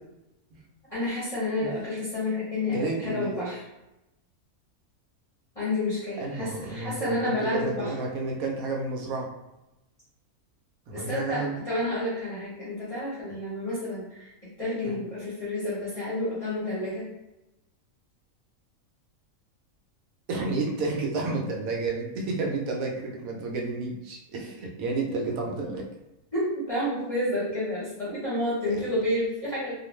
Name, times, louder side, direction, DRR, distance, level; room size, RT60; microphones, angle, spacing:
voice 1, 0.9-3.6 5.5-7.9 10.9-14.3 14.6-17.0 26.3-29.7, left 1 dB, 30° left, -11 dB, 0.9 m, -30 dB
voice 2, 2.7-3.3 6.2-9.3 10.9-11.6 14.8-14.9 20.3-25.9 28.7-28.8, right 3 dB, 80° right, 0 dB, 1.0 m, -31 dB
2.4 x 2.4 x 3.1 m, 0.93 s
omnidirectional pair, 1.5 m